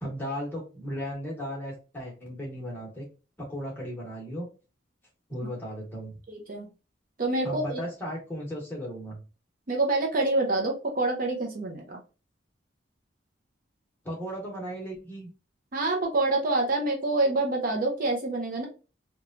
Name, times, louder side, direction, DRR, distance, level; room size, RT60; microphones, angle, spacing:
voice 1, 0.0-3.1 3.4-4.5 5.3-6.1 7.4-9.2 14.0-15.3, equal, 10° left, -3 dB, 1.0 m, -36 dB
voice 2, 6.3-6.7 7.2-7.8 9.7-12.0 15.7-18.7, right 2 dB, 45° right, 1 dB, 0.5 m, -26 dB
3.0 x 2.2 x 2.5 m, 0.33 s
head